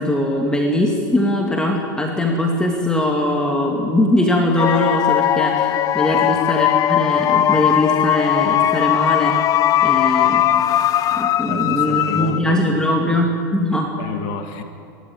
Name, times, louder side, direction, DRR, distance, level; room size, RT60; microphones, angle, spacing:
voice 1, 0.0-9.4 9.8-10.4 11.1-13.9, left 1 dB, 5° left, 0 dB, 2.5 m, -20 dB
sound 1, 4.6-12.7, left 11 dB, 30° left, 0.7 m, -18 dB
voice 2, 11.4-12.8 13.0-13.2 14.0-14.6, left 6 dB, 50° left, 6 dB, 2.4 m, -31 dB
26.0 x 13.5 x 9.7 m, 2.7 s
hypercardioid pair, 115°, 11 cm